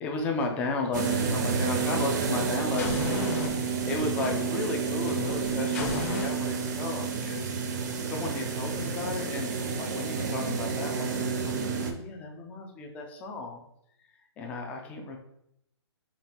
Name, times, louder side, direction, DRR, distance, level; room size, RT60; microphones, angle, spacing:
voice 1, 0.0-3.4 3.8-7.5 8.0-13.6 14.4-15.2, left 3 dB, 10° left, 2 dB, 0.3 m, -34 dB
sound 1, 0.9-2.4 2.8-6.3, left 3 dB, 35° left, 0.7 m, -36 dB
sound 2, 0.9-11.9, right 5 dB, 40° right, 0.5 m, -30 dB
5.1 x 2.2 x 2.9 m, 0.76 s
hypercardioid pair, 150°, 15 cm